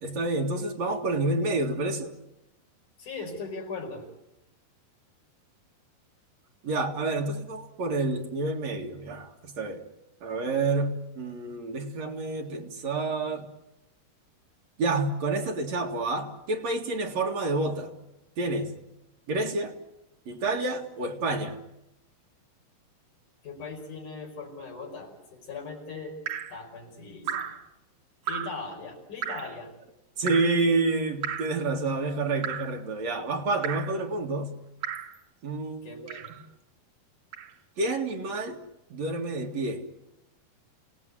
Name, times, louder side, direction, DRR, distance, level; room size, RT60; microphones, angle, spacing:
voice 1, 0.0-2.1 6.6-9.8 10.2-13.5 14.8-17.9 18.4-18.7 19.3-19.8 20.3-21.6 30.2-34.6 35.4-36.0 36.3-36.4 37.8-38.6 38.9-39.9, right 3 dB, 50° right, 2 dB, 2.9 m, -29 dB
voice 2, 3.0-4.1 23.4-26.1 26.5-27.5 28.3-29.7 35.8-36.4, left 4 dB, 50° left, 1 dB, 6.4 m, -39 dB
Drip, 26.3-26.6 27.3-27.6 28.3-28.6 29.2-29.5 30.3-30.6 31.2-31.6 32.4-32.8 33.6-34.0 34.8-35.2 36.1-36.4 37.3-37.5, right 9 dB, 65° right, 1.7 m, -34 dB
29.5 x 18.0 x 9.4 m, 0.91 s
omnidirectional pair, 4.5 m